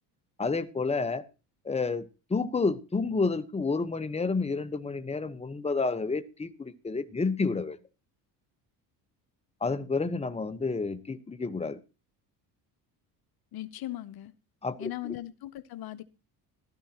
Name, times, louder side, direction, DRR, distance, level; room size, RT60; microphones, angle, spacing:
voice 1, 0.4-1.2 1.6-2.0 2.3-7.8 9.6-11.8 14.6-15.1, left 4 dB, 15° left, 1.1 m, -30 dB
voice 2, 13.5-14.3 14.8-16.0, left 15 dB, 60° left, 0.8 m, -38 dB
15.5 x 13.0 x 2.9 m
supercardioid pair, 85°, 41 cm